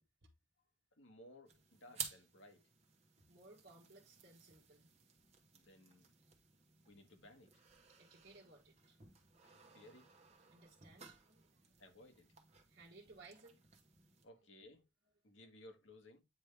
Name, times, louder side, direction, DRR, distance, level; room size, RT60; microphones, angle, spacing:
voice 1, 1.0-2.7 5.5-6.1 6.9-7.5 9.4-10.1 11.8-12.3 14.2-14.9 15.2-16.2, left 1 dB, 80° left, 1.5 m, -60 dB
sound 1, 1.5-14.2, right 6 dB, 35° right, 1.2 m, -55 dB
voice 2, 3.3-4.9 8.0-9.0 10.5-11.9 12.7-13.6, right 3 dB, 55° right, 1.3 m, -61 dB
9.0 x 3.2 x 3.4 m
head